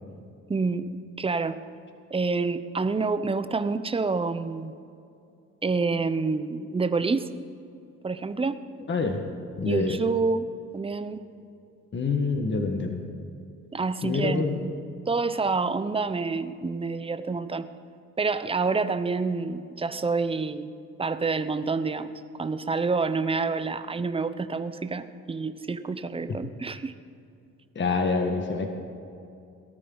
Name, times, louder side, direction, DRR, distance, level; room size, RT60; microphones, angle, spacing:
voice 1, 0.5-0.9 1.2-1.6 2.1-4.7 5.6-7.3 8.0-8.6 9.6-10.5 10.7-11.2 13.7-14.7 15.1-17.7 18.2-20.7 21.0-22.1 22.4-26.9, right 4 dB, 20° right, 11 dB, 0.8 m, -27 dB
voice 2, 8.9-9.2 9.6-10.0 11.9-13.0 14.0-14.6 27.8-28.7, left 4 dB, 40° left, 4 dB, 1.7 m, -26 dB
18.5 x 13.0 x 4.0 m, 2.5 s
cardioid pair, 90°, 30 cm